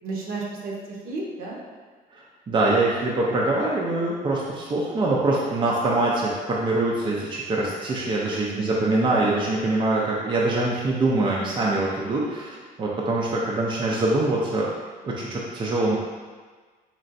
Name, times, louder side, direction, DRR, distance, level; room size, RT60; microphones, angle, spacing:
voice 1, 0.0-1.6 8.2-8.9, right 3 dB, 60° right, -2 dB, 0.9 m, -34 dB
voice 2, 2.1-14.7 15.0-16.0, right 2 dB, 30° right, -4 dB, 0.5 m, -24 dB
4.3 x 3.0 x 2.6 m, 1.5 s
cardioid pair, 110°, 17 cm